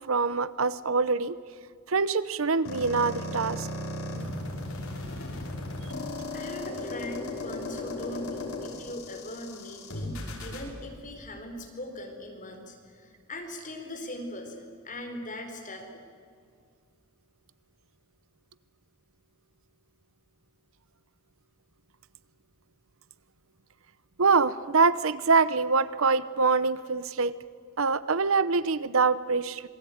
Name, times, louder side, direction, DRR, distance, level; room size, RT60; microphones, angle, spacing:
voice 1, 0.0-1.4 1.9-3.7 24.2-27.3 27.8-29.6, right 4 dB, 65° right, 16 dB, 0.8 m, -24 dB
sound 1, 2.7-10.7, left 2 dB, 70° left, 5.7 m, -36 dB
voice 2, 6.3-15.8 16.1-16.2, left 1 dB, 35° left, 3 dB, 4.5 m, -40 dB
27.0 x 21.0 x 9.4 m, 2.2 s
head